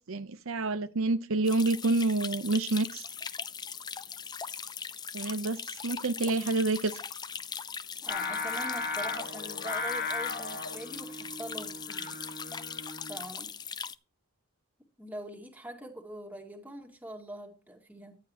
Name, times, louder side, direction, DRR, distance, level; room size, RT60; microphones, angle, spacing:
voice 1, 0.1-3.0 5.1-5.6 5.8-6.9, right 3 dB, 70° right, 10 dB, 0.8 m, -28 dB
sound 1, 1.4-13.9, left 6 dB, 20° left, 0.5 m, -40 dB
voice 2, 8.0-12.2 13.1-13.5 15.0-18.2, right 1 dB, 5° right, 2 dB, 2.1 m, -43 dB
Singing, 8.1-13.3, left 3 dB, 45° left, 2.8 m, -36 dB
14.0 x 9.7 x 2.9 m, 0.33 s
head